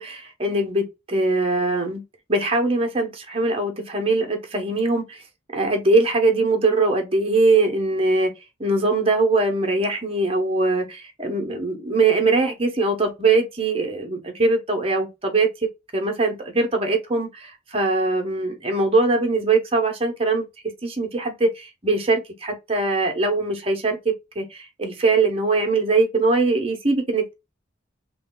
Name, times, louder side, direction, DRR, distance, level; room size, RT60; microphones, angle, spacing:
voice 1, 0.0-2.0 2.3-5.2 5.5-8.3 8.6-15.5 15.9-20.4 20.8-27.3, right 3 dB, 30° right, 0.9 m, -22 dB
3.2 x 2.3 x 3.8 m
head